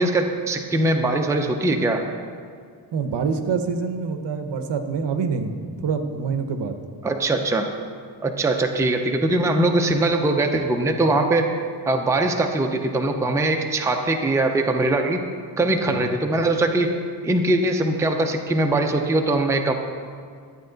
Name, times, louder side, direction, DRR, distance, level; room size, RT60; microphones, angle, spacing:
voice 1, 0.0-2.0 7.0-7.7 8.2-11.5 11.9-15.2 15.6-19.7, right 2 dB, 5° right, 3 dB, 0.5 m, -21 dB
voice 2, 2.9-6.8 15.8-16.1, right 5 dB, 65° right, 7 dB, 0.8 m, -26 dB
12.0 x 8.6 x 3.9 m, 2.1 s
wide cardioid pair, 145°, 46 cm